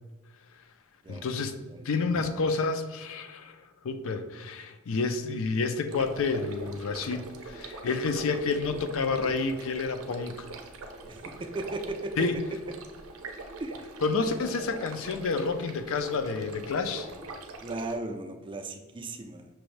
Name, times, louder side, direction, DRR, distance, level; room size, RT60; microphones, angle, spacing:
voice 1, 1.1-1.6 1.9-3.5 3.8-10.5 12.2-12.3 14.0-17.1, left 4 dB, 65° left, 8 dB, 0.4 m, -29 dB
sound 1, 5.9-17.9, right 3 dB, 70° right, 0.6 m, -43 dB
voice 2, 11.1-12.3 13.6-13.9 17.6-19.5, right 2 dB, 25° right, 6 dB, 0.4 m, -36 dB
5.9 x 2.6 x 3.2 m, 1.2 s
head